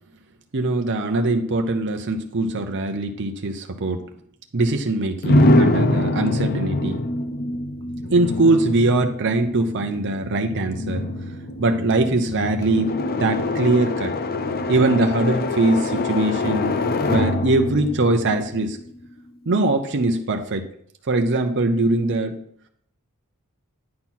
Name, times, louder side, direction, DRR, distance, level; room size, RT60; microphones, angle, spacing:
voice 1, 0.5-4.0 4.5-7.0 8.1-11.0 11.6-12.9 13.2-14.1 14.7-16.8 17.1-18.8 19.5-20.7 21.1-22.4, right 2 dB, 55° right, 4 dB, 0.7 m, -21 dB
sound 1, 5.2-19.1, left 2 dB, 45° left, 0.6 m, -24 dB
9.6 x 4.5 x 5.7 m, 0.65 s
head